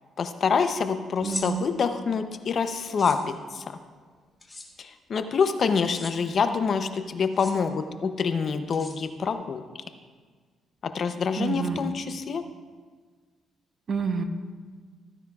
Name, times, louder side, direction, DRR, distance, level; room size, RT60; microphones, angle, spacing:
voice 1, 0.2-3.6 4.8-9.6 10.9-12.4, left 5 dB, 50° left, 9 dB, 0.7 m, -26 dB
sound 1, 1.2-1.5 2.8-3.2 4.4-4.7 5.8-6.1 7.2-7.5 8.7-9.3, left 2 dB, 20° left, 1.6 m, -38 dB
voice 2, 1.2-1.7 11.4-11.8 13.9-14.2, right 6 dB, 50° right, 7 dB, 0.9 m, -28 dB
15.0 x 9.9 x 2.4 m, 1.5 s
cardioid pair, 90°, 0 cm